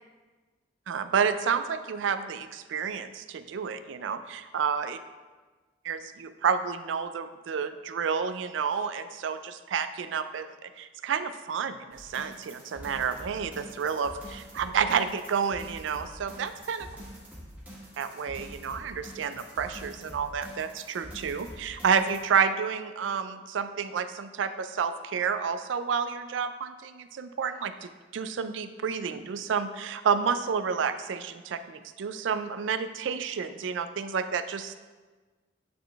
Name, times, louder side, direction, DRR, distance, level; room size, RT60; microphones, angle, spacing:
voice 1, 0.9-5.0 5.8-16.9 18.0-34.8, right 6 dB, 80° right, 11 dB, 0.4 m, -30 dB
sound 1, 11.9-22.2, equal, 10° right, 1.5 m, -46 dB
8.5 x 3.9 x 3.4 m, 1.3 s
head